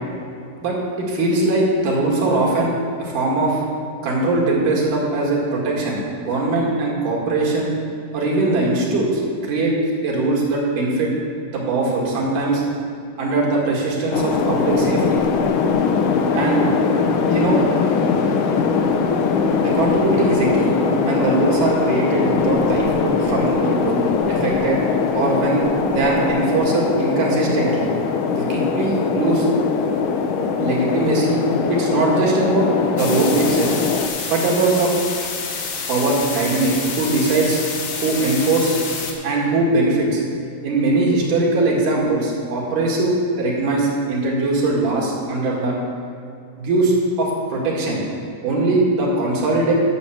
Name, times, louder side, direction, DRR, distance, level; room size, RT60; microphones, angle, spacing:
voice 1, 0.6-2.7 3.0-3.6 4.0-7.7 8.1-9.8 10.0-11.1 11.5-12.6 13.2-15.2 16.3-16.6 17.3-17.6 19.6-24.0 24.3-24.8 25.2-27.9 28.3-29.5 30.6-31.4 31.7-32.7 33.0-33.7 34.3-34.9 35.9-37.6 37.9-38.8 39.2-40.2 40.6-45.8 46.6-48.0 48.4-49.7, right 2 dB, 70° right, -3 dB, 3.5 m, -20 dB
sound 1, 14.1-34.1, left 5 dB, 75° left, 2.2 m, -21 dB
sound 2, 33.0-39.1, left 5 dB, 60° left, 1.8 m, -28 dB
10.5 x 6.6 x 7.2 m, 2.5 s
omnidirectional pair, 3.8 m